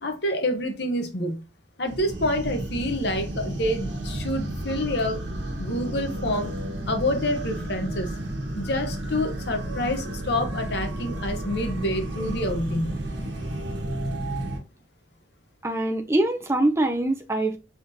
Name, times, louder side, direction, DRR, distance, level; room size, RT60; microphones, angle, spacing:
voice 1, 0.0-1.4 1.8-5.2 5.6-6.5 6.9-8.1 8.5-13.0, left 1 dB, 55° left, 0.9 m, -27 dB
sound 1, 1.9-14.6, right 1 dB, 60° right, 1.2 m, -32 dB
voice 2, 15.6-17.6, right 1 dB, 15° right, 0.5 m, -23 dB
4.9 x 3.6 x 2.6 m
head